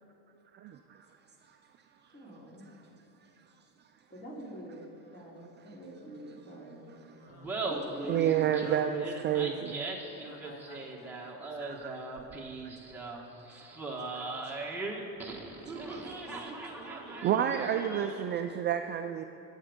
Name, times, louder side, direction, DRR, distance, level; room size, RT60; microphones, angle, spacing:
voice 1, 0.5-1.0 5.7-5.8 8.1-9.9 11.6-12.0 12.3-12.4 13.5-13.7 14.0-14.4 15.7-16.0 16.4-16.6 17.1-19.2, right 9 dB, 30° right, 6 dB, 0.4 m, -31 dB
voice 2, 2.1-2.6 4.1-6.9 7.7-8.3, right 1 dB, 20° left, -3 dB, 3.3 m, -45 dB
voice 3, 7.1-7.5 10.2-11.9, left 2 dB, 40° left, 0 dB, 2.4 m, -54 dB
Laughter, 7.3-18.3, right 3 dB, 5° right, 1.4 m, -39 dB
21.5 x 8.2 x 5.1 m, 3.0 s
cardioid pair, 140°, 38 cm